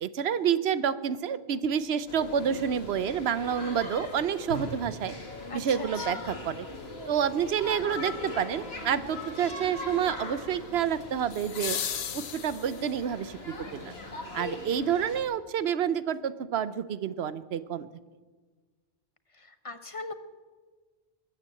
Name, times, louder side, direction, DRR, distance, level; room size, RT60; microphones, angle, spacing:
voice 1, 0.0-5.1 5.5-6.7 7.1-11.8 12.1-13.9 14.3-17.9, right 8 dB, 85° right, 15 dB, 1.0 m, -29 dB
sound 1, 2.1-15.2, left 2 dB, 80° left, 2.3 m, -40 dB
voice 2, 5.5-6.2 19.4-20.1, left 2 dB, 35° left, 9 dB, 1.0 m, -40 dB
sound 2, 5.7-5.8 11.3-13.1 15.3-15.4, left 9 dB, 55° left, 0.8 m, -35 dB
20.5 x 9.2 x 7.7 m, 1.4 s
omnidirectional pair, 1.0 m